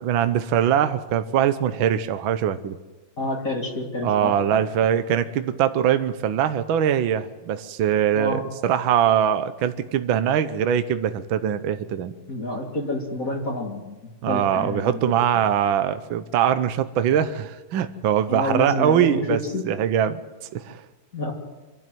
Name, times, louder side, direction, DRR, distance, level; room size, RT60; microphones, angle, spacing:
voice 1, 0.0-2.8 4.0-12.1 14.2-19.4 19.6-20.2 20.5-20.8, right 9 dB, 70° right, 10 dB, 1.6 m, -22 dB
voice 2, 3.2-4.6 8.1-8.4 12.3-14.0 14.3-15.0 15.3-15.4 18.3-19.7 21.1-21.3, left 1 dB, 40° left, 0 dB, 2.5 m, -28 dB
26.5 x 12.5 x 9.2 m, 1.2 s
omnidirectional pair, 2.4 m